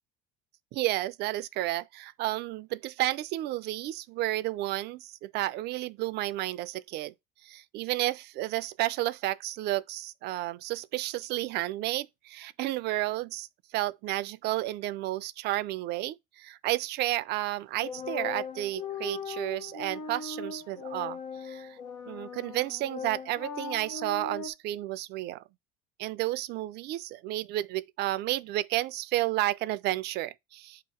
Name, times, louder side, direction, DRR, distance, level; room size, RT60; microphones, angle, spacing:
voice 1, 0.7-7.1 7.4-13.5 13.7-21.8 22.1-25.4 26.0-30.8, right 16 dB, 55° right, 0.4 m, -32 dB
sound 1, 17.8-24.5, left 5 dB, 80° left, 0.9 m, -39 dB
8.1 x 2.9 x 4.3 m
supercardioid pair, 90°, 20 cm